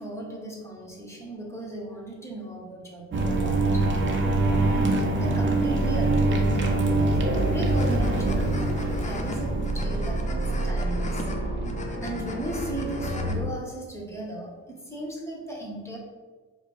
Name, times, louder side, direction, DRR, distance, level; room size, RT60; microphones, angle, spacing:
voice 1, 0.0-3.8 4.6-11.2 12.0-16.0, right 1 dB, 10° left, -2 dB, 0.9 m, -37 dB
sound 1, 3.1-13.4, right 2 dB, 40° right, 0.6 m, -25 dB
sound 2, 7.3-13.3, left 2 dB, 25° left, 0.5 m, -39 dB
4.6 x 2.0 x 3.1 m, 1.4 s
cardioid pair, 90°, 30 cm